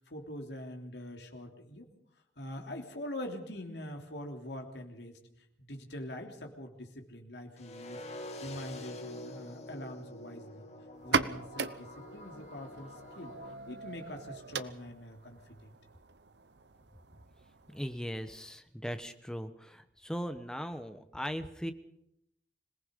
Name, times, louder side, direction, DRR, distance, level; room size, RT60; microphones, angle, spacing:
voice 1, 0.0-1.9 2.4-5.2 5.6-10.7 11.0-13.3 13.7-15.7, left 1 dB, 75° left, 3 dB, 3.3 m, -44 dB
sound 1, 7.6-13.5, left 1 dB, 40° left, 2.4 m, -46 dB
sound 2, 10.9-18.4, right 4 dB, 80° right, 0.9 m, -39 dB
voice 2, 17.7-21.7, equal, 5° left, 9 dB, 1.1 m, -39 dB
26.0 x 18.5 x 5.4 m, 0.77 s
head